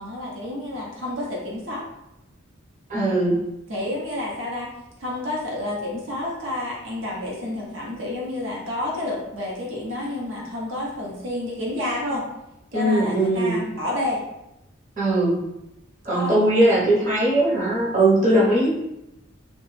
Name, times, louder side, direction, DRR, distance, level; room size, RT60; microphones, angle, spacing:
voice 1, 0.0-1.8 3.7-4.7 5.0-12.2 12.7-14.2 16.1-16.3, left 1 dB, 75° right, -4 dB, 0.7 m, -29 dB
voice 2, 2.9-3.4 12.7-13.6 15.0-15.4 16.0-18.7, right 1 dB, 35° right, -6 dB, 0.8 m, -19 dB
2.9 x 2.2 x 3.1 m, 0.89 s
head